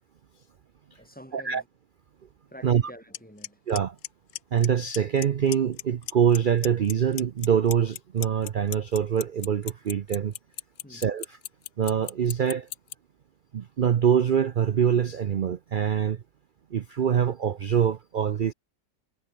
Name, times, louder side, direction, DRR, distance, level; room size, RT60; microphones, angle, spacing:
voice 1, 0.9-1.7 2.5-3.6 10.8-11.1, equal, 5° left, 5.1 m, -47 dB
Clock, 3.1-3.2 3.4-4.7 4.9-5.2 5.5-6.4 6.6-12.9, left 12 dB, 60° left, 0.9 m, -34 dB
voice 2, 4.5-10.3 10.9-11.2 11.8-12.7 13.5-16.2 16.7-18.5, right 8 dB, 85° right, 0.4 m, -24 dB
omnidirectional pair, 1.7 m